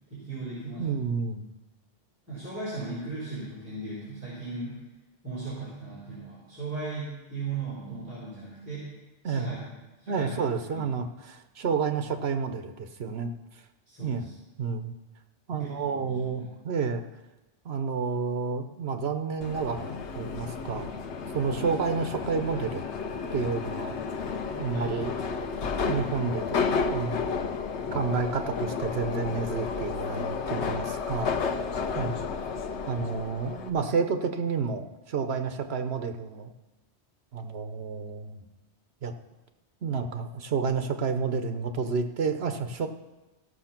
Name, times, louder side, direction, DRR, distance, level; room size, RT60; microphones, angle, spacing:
voice 1, 0.1-1.0 2.3-4.8 5.2-8.9 9.2-10.8 13.9-14.3 15.5-16.4 21.6-21.7 24.7-24.9 31.2-31.6 32.0-32.3, right 3 dB, 10° right, -10 dB, 4.0 m, -37 dB
voice 2, 0.8-1.5 9.2-9.5 10.1-13.3 14.0-14.3 14.6-14.9 15.5-17.0 17.6-20.9 21.3-22.8 23.3-23.9 24.6-25.1 25.7-26.6 26.9-27.6 27.9-31.3 31.9-32.2 32.9-36.5 37.3-38.4 39.0-39.1 39.8-42.9, right 5 dB, 65° right, 7 dB, 1.1 m, -30 dB
Subway metro underground, 19.4-33.7, left 5 dB, 80° left, 1.1 m, -32 dB
15.5 x 6.7 x 5.9 m, 1.1 s
omnidirectional pair, 1.2 m